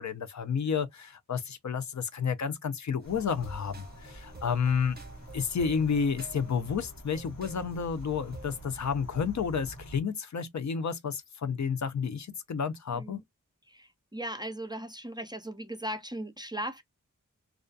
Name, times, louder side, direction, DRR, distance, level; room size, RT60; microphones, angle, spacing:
voice 1, 0.0-5.0 5.3-13.2, left 6 dB, 60° left, 0.5 m, -31 dB
sound 1, 3.0-10.0, right 1 dB, 75° left, 1.1 m, -47 dB
sound 2, 3.0-8.6, right 2 dB, 30° right, 0.8 m, -49 dB
voice 2, 13.7-16.8, right 1 dB, 15° right, 0.4 m, -38 dB
2.4 x 2.3 x 2.4 m
wide cardioid pair, 70°, 32 cm